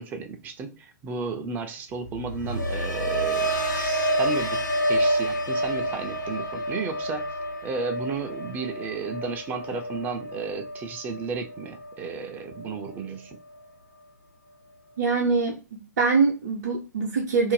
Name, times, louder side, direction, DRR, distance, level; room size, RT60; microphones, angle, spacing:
voice 1, 0.0-7.3 7.6-13.4, right 4 dB, 20° right, 0.4 m, -33 dB
sound 1, 2.0-12.1 12.5-12.9, right 1 dB, 80° left, 0.7 m, -28 dB
voice 2, 15.0-15.5 16.0-17.5, right 4 dB, 50° right, 0.7 m, -23 dB
2.6 x 2.0 x 3.1 m
figure-of-eight pair, 110°, 10 cm